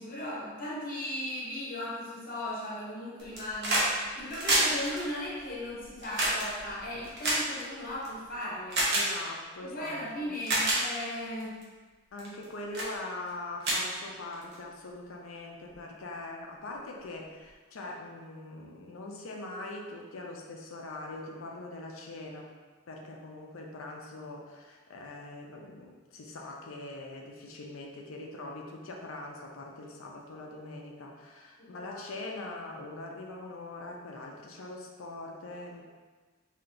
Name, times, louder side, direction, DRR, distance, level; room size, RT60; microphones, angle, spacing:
voice 1, 0.0-8.9 9.6-11.6 31.6-32.0, left 1 dB, 45° left, -5 dB, 0.8 m, -37 dB
sound 1, 3.2-3.9 4.2-8.1 8.7-9.1 9.8-9.9 10.3-10.8 11.4-11.6 12.2-12.4 12.7-12.9 13.3-13.4 13.6-14.5 15.7-15.8, right 1 dB, 55° right, 0.9 m, -28 dB
voice 2, 8.9-10.3 12.1-22.5 22.9-35.8, left 2 dB, 85° left, 0 dB, 0.6 m, -42 dB
4.3 x 2.8 x 2.6 m, 1.4 s
head